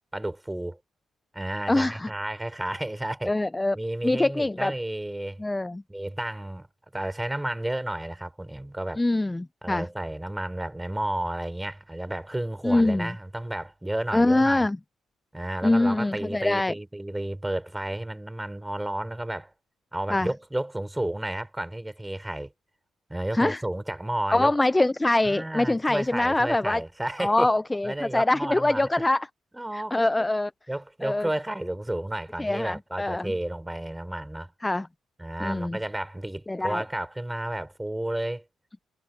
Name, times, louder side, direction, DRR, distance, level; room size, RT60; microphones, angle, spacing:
voice 1, 0.1-0.8 1.3-3.3 3.7-5.4 5.9-6.7 6.9-9.0 9.6-14.7 15.3-19.5 19.9-22.5 23.1-24.5 25.2-27.5 27.8-28.9 29.5-30.3 30.7-34.5 35.2-38.4, right 1 dB, 10° right, 3.8 m, -32 dB
voice 2, 1.7-2.1 3.3-3.8 4.0-4.7 5.4-5.8 9.0-9.9 12.6-13.1 14.1-14.8 15.6-16.7 20.1-20.3 23.3-23.6 24.3-26.8 27.2-29.3 29.7-30.5 31.0-31.3 32.4-33.3 34.6-34.9 35.4-35.8 36.5-36.8, left 2 dB, 15° left, 0.4 m, -24 dB
cardioid pair, 90°, 0 cm